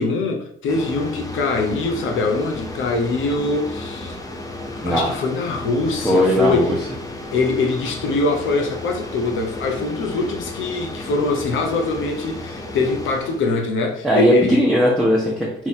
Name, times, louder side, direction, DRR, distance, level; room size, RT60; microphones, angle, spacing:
voice 1, 0.0-4.2 4.8-6.7 7.3-14.7, left 3 dB, 80° left, 0.9 m, -23 dB
sound 1, 0.7-13.7, left 1 dB, 15° left, 0.8 m, -33 dB
voice 2, 4.8-5.1 6.0-6.7 14.0-15.7, equal, ahead, 1.1 m, -18 dB
3.9 x 2.9 x 4.3 m
cardioid pair, 90°, 20 cm